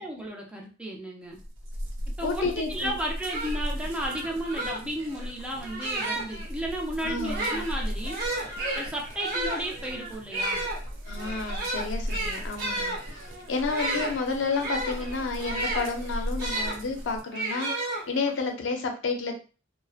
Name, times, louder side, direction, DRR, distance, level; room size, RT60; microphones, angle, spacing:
voice 1, 0.0-1.4 2.2-8.2 8.8-10.6, right 1 dB, 5° right, -1 dB, 0.4 m, -33 dB
sound 1, 1.3-17.2, equal, 90° right, 0.6 m, -37 dB
voice 2, 2.2-2.9 7.0-7.4 11.1-19.4, left 4 dB, 75° left, 4 dB, 0.5 m, -31 dB
sound 2, 2.8-2.9 3.2-6.5 7.2-16.8 17.3-18.4, right 1 dB, 50° right, 0.9 m, -33 dB
2.5 x 2.1 x 2.3 m, 0.36 s
head